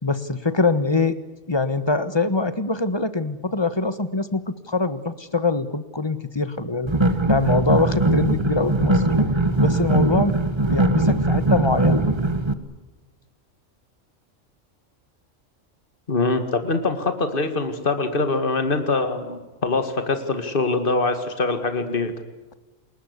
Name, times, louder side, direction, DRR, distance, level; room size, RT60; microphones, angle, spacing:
voice 1, 0.0-1.2 1.5-6.9 7.3-9.0 9.6-12.0, left 3 dB, 20° left, 13 dB, 1.4 m, -23 dB
sound 1, 6.9-12.5, right 2 dB, 20° right, 1.4 m, -20 dB
voice 2, 16.1-22.1, left 3 dB, 45° left, 8 dB, 2.4 m, -23 dB
29.0 x 21.0 x 8.3 m, 1.1 s
omnidirectional pair, 1.3 m